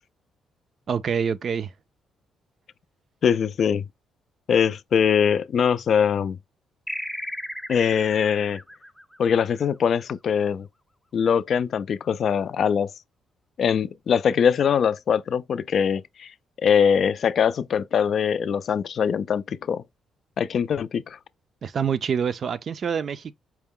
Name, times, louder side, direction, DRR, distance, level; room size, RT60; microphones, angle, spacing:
voice 1, 0.9-1.7 21.6-23.3, right 7 dB, 50° right, 0.4 m, -26 dB
voice 2, 3.2-3.8 4.5-6.4 7.7-8.6 9.2-10.7 11.1-12.9 13.6-16.3 16.6-19.8 20.4-21.2, left 7 dB, 60° left, 0.3 m, -22 dB
sound 1, 6.9-9.9, left 1 dB, ahead, 0.6 m, -35 dB
4.6 x 2.1 x 3.6 m
cardioid pair, 90°, 0 cm